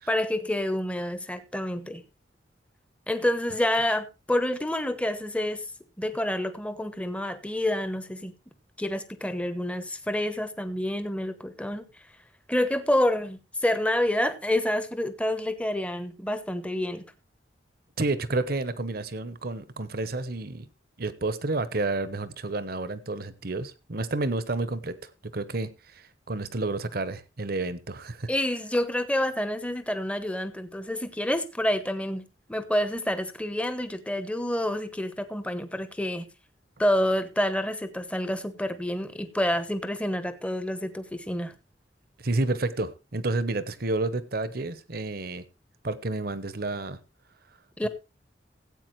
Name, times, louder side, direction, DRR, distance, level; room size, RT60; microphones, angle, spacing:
voice 1, 0.1-2.0 3.1-5.6 6.0-8.4 8.8-11.8 12.5-17.1 28.3-36.3 36.8-41.6 47.8-47.9, left 1 dB, 5° left, 1.0 m, -28 dB
voice 2, 18.0-20.7 21.0-28.3 42.2-45.4 45.8-47.0 47.8-47.9, right 2 dB, 55° right, 1.0 m, -30 dB
17.0 x 8.5 x 3.2 m
head